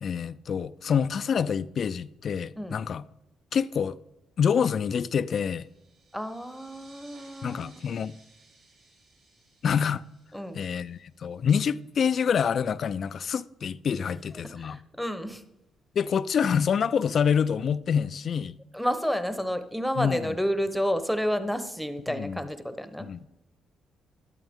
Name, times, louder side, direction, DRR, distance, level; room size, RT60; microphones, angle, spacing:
voice 1, 0.0-3.0 3.5-4.0 4.4-5.7 7.4-8.2 9.6-10.0 10.5-14.8 16.0-18.6 20.0-20.4 22.1-22.4 23.0-23.2, left 7 dB, 55° left, 0.4 m, -27 dB
sound 1, 5.3-11.6, right 3 dB, 75° right, 4.8 m, -58 dB
voice 2, 6.1-8.0 10.3-10.6 14.5-15.4 18.7-23.1, equal, ahead, 0.9 m, -30 dB
12.5 x 11.5 x 3.6 m
cardioid pair, 90°, 0 cm